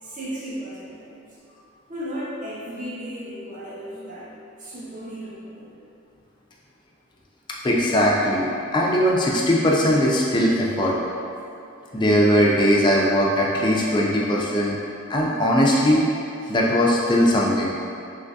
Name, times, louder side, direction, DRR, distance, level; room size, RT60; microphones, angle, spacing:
voice 1, 0.0-1.4 1.9-4.3 4.6-5.8, equal, 35° right, -7 dB, 0.7 m, -35 dB
voice 2, 7.6-11.0 11.9-14.8 15.1-16.1 16.5-17.8, equal, 20° left, -3 dB, 0.4 m, -20 dB
3.1 x 2.6 x 3.4 m, 2.6 s
head